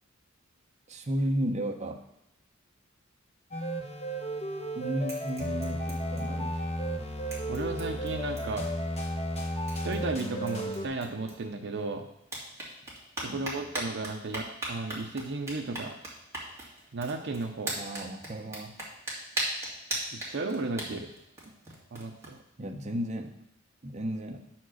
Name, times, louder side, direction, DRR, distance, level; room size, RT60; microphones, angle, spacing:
voice 1, 0.9-2.0 4.7-6.6 13.3-13.4 17.8-18.7 20.9-21.0 22.6-23.3 23.8-24.4, right 1 dB, 35° right, 3 dB, 0.8 m, -33 dB
sound 1, 3.5-10.9, equal, 35° left, 1.0 m, -33 dB
sound 2, 4.2-4.7 5.0-6.6 6.9-7.0 7.3-8.7 9.3-9.4 9.7-11.8 12.2-22.3, right 1 dB, 15° right, 2.1 m, -39 dB
voice 2, 7.5-8.8 9.8-12.1 13.3-16.0 16.9-17.8 20.3-21.1 21.9-22.4, right 3 dB, 60° right, 4 dB, 0.7 m, -34 dB
9.2 x 4.4 x 6.3 m, 0.83 s
head